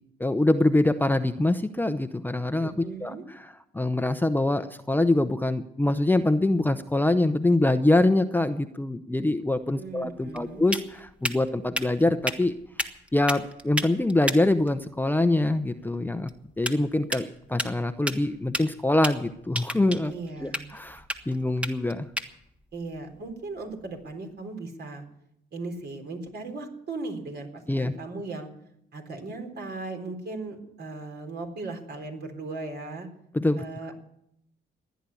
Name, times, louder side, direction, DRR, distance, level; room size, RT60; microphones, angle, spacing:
voice 1, 0.2-2.7 3.0-12.5 13.1-16.3 16.6-20.1 20.4-22.1 27.7-27.9 33.3-33.6, left 2 dB, 10° left, 9 dB, 0.7 m, -24 dB
voice 2, 2.6-3.2 9.8-10.7 20.1-20.6 22.7-25.0 25.5-28.5 28.9-33.1 33.6-34.0, right 3 dB, 55° right, 4 dB, 3.8 m, -37 dB
sound 1, 9.4-24.1, equal, 5° right, 1.5 m, -36 dB
16.0 x 10.5 x 8.4 m, 0.77 s
cardioid pair, 90°, 20 cm